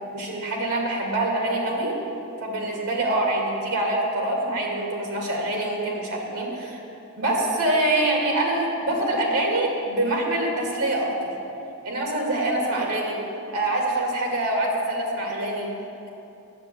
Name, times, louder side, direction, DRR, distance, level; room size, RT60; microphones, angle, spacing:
voice 1, 0.1-1.9 2.4-6.8 7.1-11.3 11.8-13.2 13.5-15.7, right 1 dB, 80° right, -1 dB, 2.5 m, -25 dB
10.0 x 7.1 x 8.8 m, 2.7 s
head